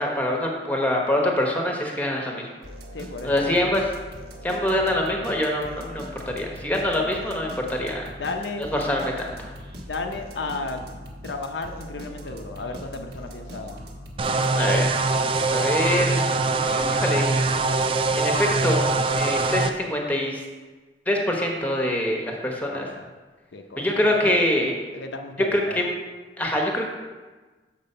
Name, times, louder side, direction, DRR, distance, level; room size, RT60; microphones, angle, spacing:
voice 1, 0.0-2.5 3.2-3.8 4.4-8.0 8.6-9.5 14.5-14.9 15.3-17.3 18.2-18.8 19.1-20.4 21.1-22.9 23.8-24.7 25.5-25.9 26.4-26.9, left 1 dB, 10° left, 0 dB, 0.9 m, -25 dB
sound 1, 2.6-14.8, equal, 65° right, 1.1 m, -41 dB
voice 2, 2.9-3.7 8.2-8.6 9.8-13.8 14.2-14.6 22.6-23.1 23.5-24.2 24.9-25.8, left 3 dB, 85° left, 4 dB, 0.6 m, -34 dB
sound 2, 14.2-19.7, right 3 dB, 30° right, 0.3 m, -23 dB
6.9 x 4.6 x 5.5 m, 1.3 s
head